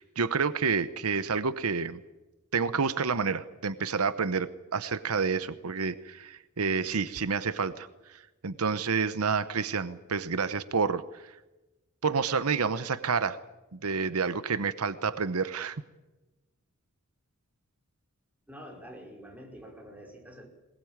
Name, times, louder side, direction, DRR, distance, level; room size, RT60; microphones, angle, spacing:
voice 1, 0.0-2.0 2.5-11.3 12.0-13.4 13.7-15.8, right 5 dB, 85° right, 13 dB, 0.9 m, -29 dB
voice 2, 18.5-20.5, equal, 5° right, 1 dB, 5.3 m, -47 dB
21.0 x 21.0 x 8.9 m, 1.1 s
head